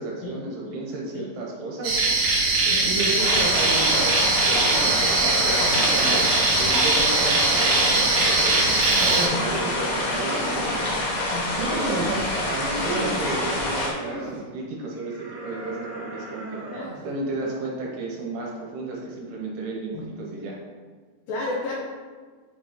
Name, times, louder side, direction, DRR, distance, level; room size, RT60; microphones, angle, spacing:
voice 1, 0.0-2.0 2.8-6.2 6.5-8.7 9.0-11.2 11.6-16.6 17.0-20.6, right 3 dB, 75° right, -3 dB, 2.9 m, -32 dB
sound 1, 1.8-9.3, right 3 dB, 90° right, 1.2 m, -21 dB
voice 2, 2.7-3.0 5.4-5.8 9.1-9.4 11.3-11.5 16.7-16.9 17.4-17.5 19.9-20.0 21.3-21.7, left 2 dB, 75° left, -4 dB, 2.1 m, -32 dB
sound 2, 3.2-13.9, left 1 dB, 60° left, 2.5 m, -27 dB
sound 3, 3.2-4.1 4.4-5.1 5.5-6.3 6.8-8.8 9.3-10.7 11.3-12.2 12.6-13.3 13.8-14.4 14.9-17.1, right 2 dB, 50° right, 1.7 m, -38 dB
8.1 x 3.0 x 5.0 m, 1.5 s
omnidirectional pair, 5.1 m